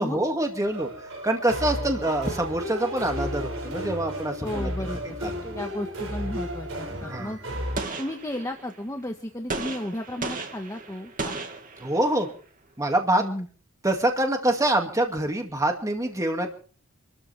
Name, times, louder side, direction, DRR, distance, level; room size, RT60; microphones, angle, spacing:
voice 1, 0.0-4.7 5.2-5.6 7.0-7.3 11.8-12.3 12.8-13.2 13.8-16.5, right 1 dB, 15° right, 3 dB, 2.4 m, -25 dB
sound 1, 0.6-7.8, equal, 70° right, 6.8 m, -33 dB
voice 2, 4.4-5.2 5.5-7.4 8.0-11.4 13.2-13.5, left 1 dB, 15° left, 3 dB, 1.6 m, -33 dB
Gunshot gunfire, 7.8-8.8 9.5-12.3, right 3 dB, 40° right, 2.4 m, -35 dB
27.5 x 13.5 x 3.5 m, 0.41 s
head